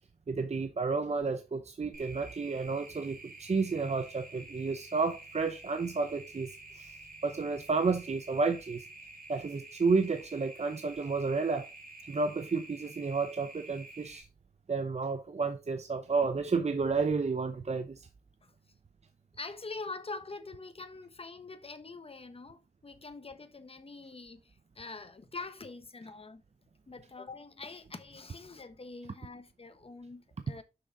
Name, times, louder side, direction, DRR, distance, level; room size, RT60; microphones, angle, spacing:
voice 1, 0.3-6.5 6.8-6.9 7.2-8.8 9.3-11.7 12.1-14.3 14.7-18.1, right 4 dB, 40° right, 0.7 m, -31 dB
sound 1, 1.9-14.2, right 2 dB, 60° right, 3.2 m, -50 dB
voice 2, 19.3-26.4 26.9-30.6, left 3 dB, 35° left, 1.2 m, -44 dB
6.5 x 6.1 x 4.1 m
wide cardioid pair, 105°, 16 cm